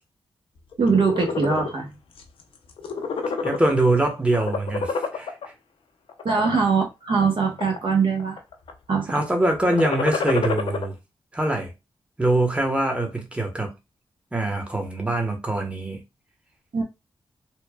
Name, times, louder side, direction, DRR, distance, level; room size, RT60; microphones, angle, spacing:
sound 1, 0.7-1.7 2.2-2.4 2.7-4.0 4.3-5.5 6.1-6.6 7.1-7.9 8.2-8.7 9.6-10.8, left 5 dB, 70° left, 0.5 m, -28 dB
voice 1, 0.8-1.9 6.2-8.4 8.9-9.1 16.7-16.8, right 5 dB, 60° right, 0.7 m, -22 dB
voice 2, 3.4-5.3 9.1-11.0 11.3-11.7 12.2-13.7 14.3-16.0, right 2 dB, 10° right, 0.9 m, -23 dB
3.0 x 2.1 x 2.2 m
cardioid pair, 50°, 10 cm